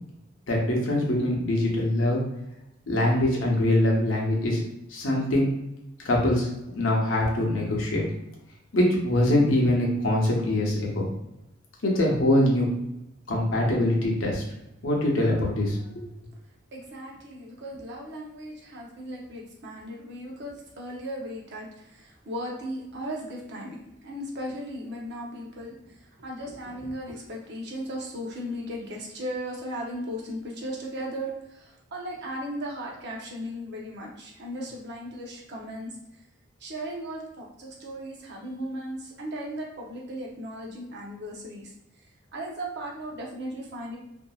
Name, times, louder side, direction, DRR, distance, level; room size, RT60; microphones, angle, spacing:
voice 1, 0.5-2.2 2.9-4.6 4.9-5.5 6.0-6.5 6.8-8.0 8.7-11.1 11.8-12.7 13.3-14.4 14.8-16.1, left 1 dB, 70° left, -2 dB, 0.8 m, -23 dB
voice 2, 16.7-36.0 36.6-41.7 42.3-44.0, equal, 60° right, -2 dB, 0.7 m, -36 dB
2.7 x 2.6 x 2.3 m, 0.86 s
head